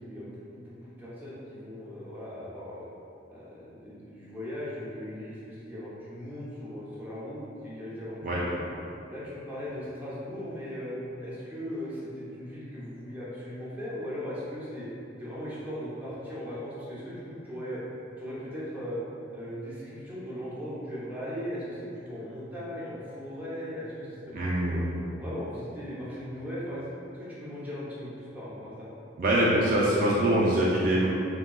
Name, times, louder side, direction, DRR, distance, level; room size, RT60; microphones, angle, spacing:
voice 1, 0.0-2.9 3.3-8.6 9.1-14.9 15.2-17.8 18.2-19.0 19.3-24.8 25.2-26.8 27.1-28.9, equal, 10° right, -9 dB, 0.6 m, -38 dB
voice 2, 24.3-24.9 29.2-31.1, right 1 dB, 45° right, -6 dB, 0.4 m, -24 dB
3.6 x 2.7 x 2.3 m, 2.6 s
head